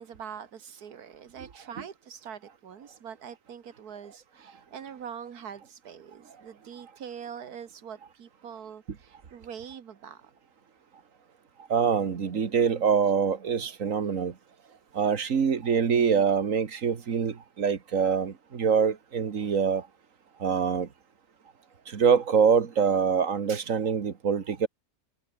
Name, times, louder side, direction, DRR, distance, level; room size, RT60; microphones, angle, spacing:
voice 1, 0.0-10.3 14.9-15.0, right 8 dB, 90° right, 1.9 m, -43 dB
voice 2, 11.7-14.3 14.9-19.8 20.4-20.9 21.9-24.7, right 6 dB, 60° right, 1.9 m, -25 dB
omnidirectional pair, 1.6 m